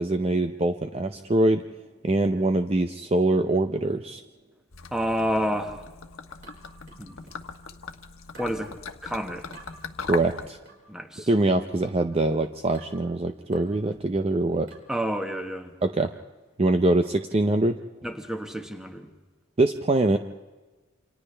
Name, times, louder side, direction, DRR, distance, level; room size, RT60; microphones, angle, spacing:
voice 1, 0.0-1.6 2.0-4.2 10.1-10.6 11.3-14.7 15.8-16.1 16.6-17.8 19.6-20.2, right 2 dB, 30° right, 7 dB, 0.5 m, -23 dB
Gurgling / Liquid, 4.7-10.5, left 5 dB, 80° left, 1.2 m, -39 dB
voice 2, 4.9-5.8 7.0-7.3 8.4-8.7 9.0-9.5 10.9-11.3 14.9-15.7 18.0-19.1, equal, 5° right, 5 dB, 1.3 m, -29 dB
sound 1, 6.4-7.5 8.3-8.6 9.5-9.7 10.7-10.9 11.8-12.1 12.7-13.0 13.5-13.8 14.7-15.0, right 2 dB, 60° right, 4.9 m, -50 dB
29.0 x 27.0 x 3.3 m, 1.3 s
head